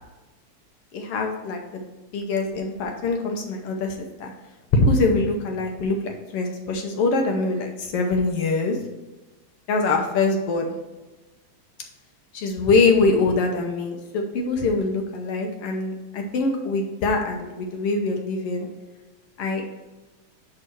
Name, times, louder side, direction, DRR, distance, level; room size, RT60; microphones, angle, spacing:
voice 1, 0.9-1.8 2.1-4.3 4.7-8.8 9.7-10.7 12.3-18.7 19.4-19.6, left 3 dB, 65° left, 3 dB, 1.6 m, -23 dB
10.5 x 3.7 x 4.5 m, 1.1 s
omnidirectional pair, 3.4 m